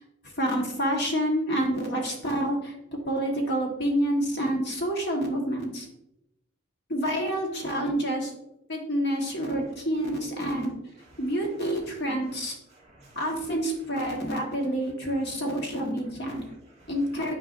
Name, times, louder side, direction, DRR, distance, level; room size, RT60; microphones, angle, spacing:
voice 1, 0.4-2.7 3.0-5.9 6.9-8.3 8.7-10.7 11.2-12.6 13.1-16.4 16.9-17.3, equal, 60° left, 1 dB, 1.4 m, -28 dB
voice 2, 11.0-11.4 12.4-13.6 14.1-14.3 16.3-16.9, right 1 dB, 35° right, -4 dB, 2.2 m, -55 dB
9.5 x 4.6 x 2.6 m, 0.83 s
head